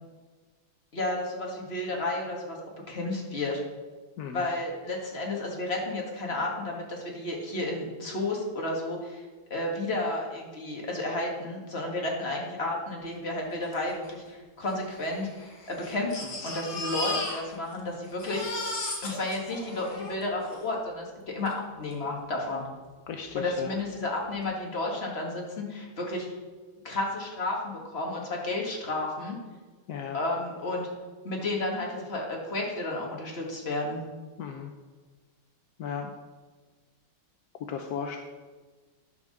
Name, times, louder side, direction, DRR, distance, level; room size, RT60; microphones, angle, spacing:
voice 1, 0.9-2.6 2.9-3.6 4.3-9.2 9.5-18.7 19.0-21.5 21.8-22.6 23.4-26.3 26.8-29.4 30.1-30.9 31.2-34.0, left 2 dB, 30° left, -1 dB, 1.9 m, -32 dB
voice 2, 4.2-4.5 23.1-23.8 29.9-30.2 34.4-34.7 35.8-36.1 37.7-38.2, left 7 dB, 70° left, 4 dB, 0.9 m, -35 dB
Crying sobbing, 13.7-13.8 14.0-14.1 14.9-17.8 18.1-20.6 21.5-21.6 21.9-22.0, left 2 dB, 50° left, 2.2 m, -35 dB
10.5 x 4.7 x 6.5 m, 1.4 s
omnidirectional pair, 2.3 m